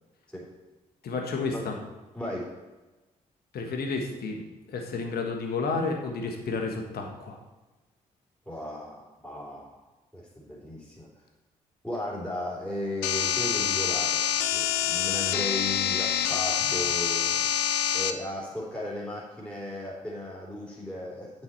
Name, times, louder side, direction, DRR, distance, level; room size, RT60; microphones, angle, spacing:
voice 1, 1.0-1.8 3.5-4.4 4.7-7.4 16.6-16.7, left 4 dB, 60° left, 3 dB, 1.5 m, -31 dB
voice 2, 2.1-2.5 8.4-9.8 10.1-11.1 11.8-17.5 17.9-21.3, left 1 dB, 5° left, -6 dB, 3.3 m, -36 dB
sound 1, 13.0-18.1, left 10 dB, 80° left, 0.5 m, -26 dB
9.1 x 6.5 x 4.1 m, 1.1 s
hypercardioid pair, 40°, 18 cm